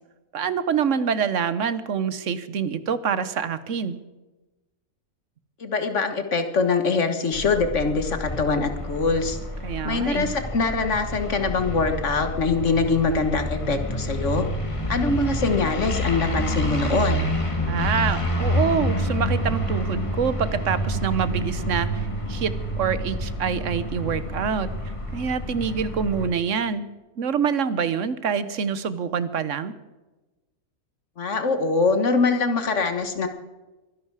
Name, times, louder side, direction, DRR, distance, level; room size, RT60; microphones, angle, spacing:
voice 1, 0.3-4.0 9.6-10.3 17.7-24.7 25.1-26.9 27.2-29.7, right 7 dB, 60° right, 14 dB, 1.3 m, -26 dB
voice 2, 5.6-9.4 9.8-14.5 14.9-17.3 31.2-33.3, left 4 dB, 55° left, 7 dB, 1.8 m, -23 dB
sound 1, 7.3-26.3, equal, 20° left, 1.9 m, -28 dB
23.5 x 11.5 x 4.8 m, 1.1 s
omnidirectional pair, 1.5 m